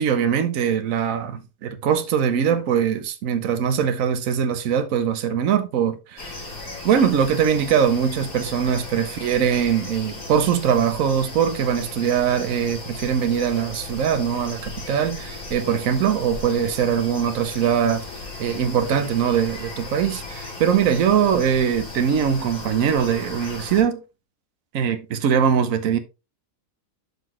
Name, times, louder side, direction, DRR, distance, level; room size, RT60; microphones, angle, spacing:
voice 1, 0.0-6.4 6.8-18.0 18.4-24.0 24.7-26.0, right 8 dB, 75° right, 1.2 m, -22 dB
sound 1, 6.2-23.8, left 2 dB, 80° left, 3.1 m, -36 dB
12.0 x 4.0 x 3.0 m
omnidirectional pair, 1.4 m